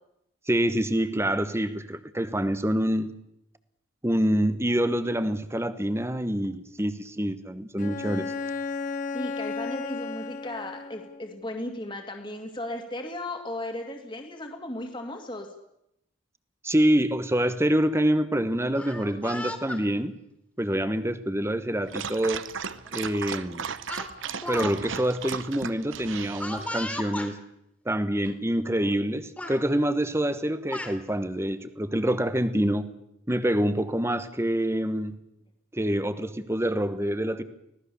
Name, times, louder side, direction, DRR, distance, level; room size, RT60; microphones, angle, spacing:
voice 1, 0.5-3.1 4.0-8.4 16.6-20.2 20.6-22.5 22.9-23.7 24.5-27.4 27.8-32.9 33.3-35.1 35.7-37.4, right 1 dB, 15° right, 12 dB, 1.1 m, -26 dB
Bowed string instrument, 7.8-11.3, left 4 dB, 40° left, 1.2 m, -34 dB
voice 2, 9.1-15.5, left 1 dB, 25° left, 3 dB, 2.3 m, -36 dB
Speech, 18.6-19.8 20.7-21.0 22.2-22.3 22.7-22.9 23.9-24.7 25.0-25.1 26.4-27.3 28.2-28.3 28.7-29.1 29.4-29.6 30.4-31.0, left 1 dB, 5° left, 2.6 m, -36 dB
Dog, 21.9-26.8, right 6 dB, 70° right, 0.9 m, -36 dB
25.0 x 17.5 x 7.0 m, 0.79 s
head